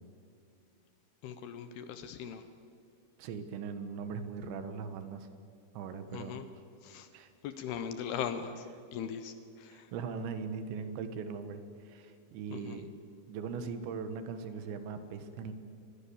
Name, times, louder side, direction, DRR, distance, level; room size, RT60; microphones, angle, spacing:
voice 1, 1.2-2.4 6.1-6.5 6.8-7.1 7.4-9.9 12.5-12.8, left 8 dB, 75° left, 10 dB, 2.6 m, -40 dB
voice 2, 3.2-5.3 5.7-6.4 7.1-7.3 9.7-12.9 13.3-15.5, right 5 dB, 80° right, 9 dB, 3.6 m, -40 dB
23.5 x 20.5 x 7.2 m, 2.6 s
omnidirectional pair, 5.2 m